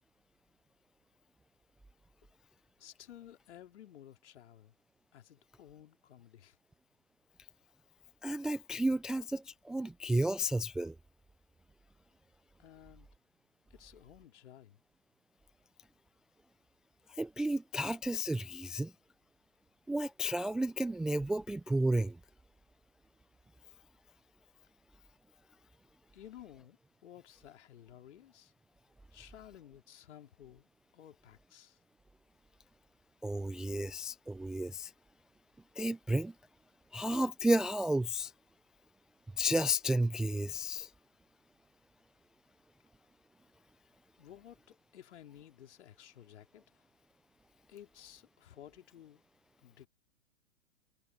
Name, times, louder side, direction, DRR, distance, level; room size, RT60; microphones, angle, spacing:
voice 1, 2.8-4.7 5.1-6.6 12.6-13.1 13.7-14.8 26.1-28.5 29.1-30.7 30.9-31.8 44.2-46.6 47.7-49.2 49.6-49.9, left 11 dB, 65° left, 3.7 m, -54 dB
voice 2, 8.2-10.9 17.2-18.9 19.9-22.2 33.2-34.9 35.8-36.3 36.9-38.3 39.4-40.9, right 1 dB, ahead, 0.3 m, -32 dB
hypercardioid pair, 110°, 38 cm